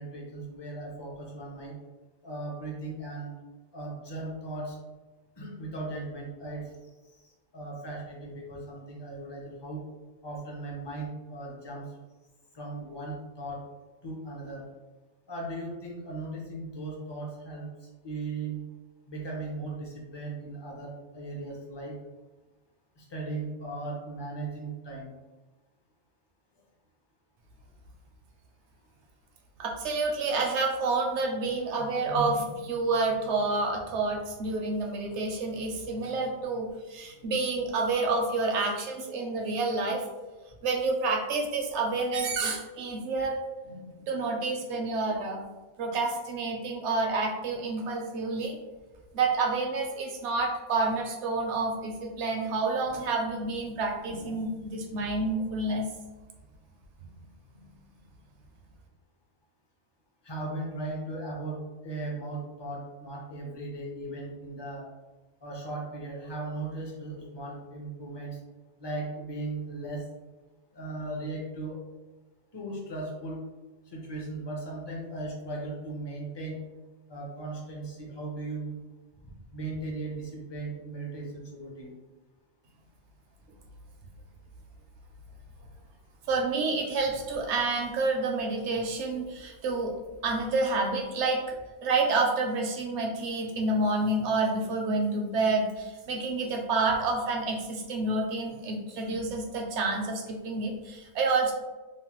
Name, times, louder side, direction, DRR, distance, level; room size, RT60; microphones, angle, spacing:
voice 1, 0.0-1.8 2.2-3.3 3.7-4.8 5.4-6.6 7.5-9.8 10.2-11.8 12.5-13.6 14.0-14.6 15.3-17.7 18.0-18.6 19.1-21.9 23.0-25.1 60.2-64.8 65.4-68.4 68.8-70.0 70.7-71.8 72.5-73.4 73.9-76.6 77.1-78.8 79.5-81.9, right 2 dB, 30° left, -2 dB, 0.5 m, -37 dB
voice 2, 29.6-40.0 40.6-43.4 43.6-45.4 45.8-48.6 49.1-55.9 86.3-89.9 90.2-91.4 91.8-101.5, right 3 dB, 70° right, 1 dB, 0.8 m, -29 dB
3.1 x 2.1 x 2.9 m, 1.2 s
omnidirectional pair, 1.3 m